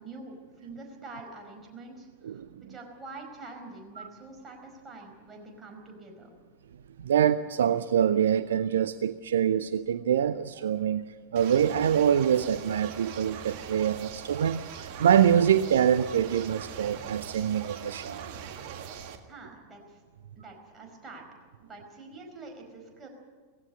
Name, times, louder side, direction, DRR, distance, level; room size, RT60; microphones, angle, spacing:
voice 1, 0.0-2.4 2.7-6.3 19.3-20.0 20.4-21.2 21.6-23.1, right 3 dB, 20° right, 2 dB, 4.9 m, -46 dB
voice 2, 7.0-11.0 11.3-18.4, right 9 dB, 65° right, 14 dB, 0.5 m, -25 dB
sound 1, 11.4-19.2, right 8 dB, 45° right, 1.7 m, -41 dB
18.0 x 16.0 x 9.6 m, 1.5 s
figure-of-eight pair, 90°, 0 cm